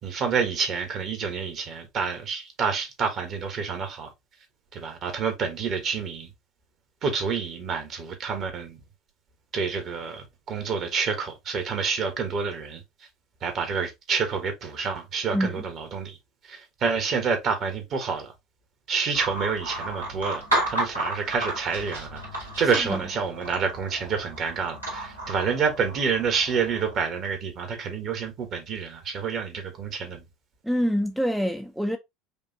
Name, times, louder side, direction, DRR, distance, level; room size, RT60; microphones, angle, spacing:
voice 1, 0.0-4.1 4.7-6.3 7.0-8.8 9.5-12.8 13.4-16.2 16.4-18.3 18.9-30.2, right 5 dB, 40° right, 1.4 m, -28 dB
voice 2, 15.3-15.6 22.9-23.0 30.6-32.0, equal, ahead, 0.5 m, -25 dB
sound 1, 19.1-27.0, right 1 dB, 85° right, 2.3 m, -33 dB
5.2 x 2.5 x 2.8 m
figure-of-eight pair, 70°, 0 cm